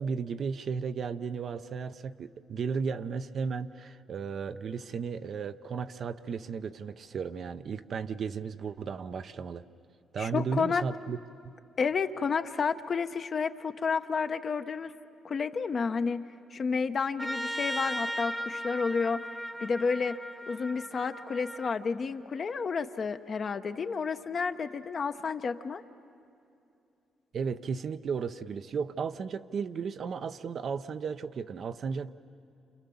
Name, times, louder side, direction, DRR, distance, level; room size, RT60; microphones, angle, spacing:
voice 1, 0.0-9.6 10.1-11.2 11.4-11.5 27.3-32.1, right 5 dB, 55° right, 10 dB, 0.8 m, -34 dB
voice 2, 10.2-10.8 11.8-14.9 15.2-16.2 16.5-19.2 19.6-20.2 20.5-25.8, left 5 dB, 45° left, 8 dB, 1.0 m, -30 dB
Trumpet, 17.2-21.7, equal, ahead, 0.8 m, -37 dB
29.0 x 28.5 x 7.1 m, 2.6 s
cardioid pair, 90°, 0 cm